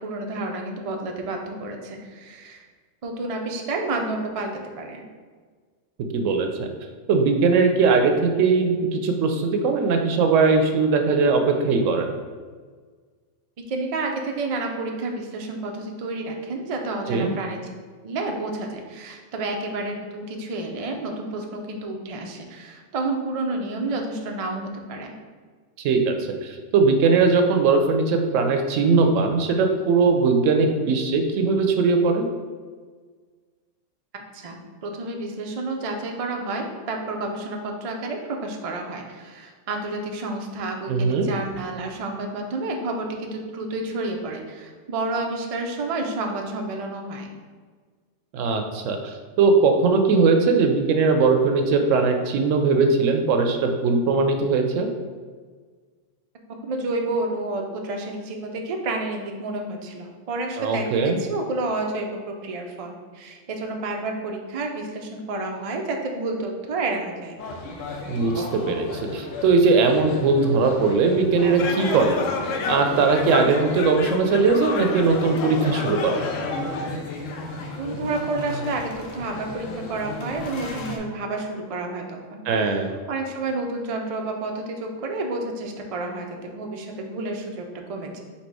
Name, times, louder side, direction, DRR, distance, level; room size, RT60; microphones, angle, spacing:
voice 1, 0.0-2.6 3.0-5.0 13.6-17.6 18.0-25.1 34.1-47.3 56.7-67.4 77.8-78.8 79.1-82.8 83.1-88.2, right 2 dB, 65° right, 2 dB, 0.3 m, -30 dB
voice 2, 6.1-6.7 7.1-12.1 17.1-17.3 25.8-26.2 26.4-32.3 40.9-41.3 48.3-54.9 60.6-61.2 68.1-72.2 72.7-76.2 82.5-82.9, right 4 dB, 80° right, 5 dB, 0.9 m, -20 dB
sound 1, 67.4-81.0, left 2 dB, 85° left, 1.0 m, -35 dB
sound 2, 71.4-77.0, left 4 dB, 65° left, 0.7 m, -30 dB
4.1 x 2.8 x 4.6 m, 1.5 s
omnidirectional pair, 1.3 m